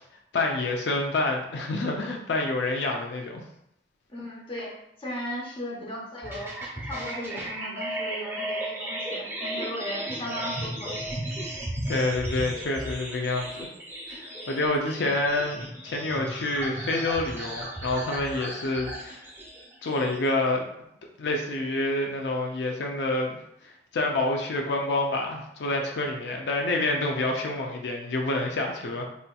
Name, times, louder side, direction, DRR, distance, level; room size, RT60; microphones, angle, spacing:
voice 1, 0.3-3.4 11.9-13.7 14.1-19.2 19.8-20.6 21.2-23.4 23.6-29.1, left 2 dB, 80° left, 1 dB, 0.4 m, -28 dB
voice 2, 4.1-4.7 5.0-6.5 6.8-11.0, equal, 30° left, -3 dB, 0.8 m, -36 dB
sound 1, 6.2-20.3, right 1 dB, 15° right, 0.8 m, -35 dB
4.1 x 2.8 x 2.2 m, 0.79 s
head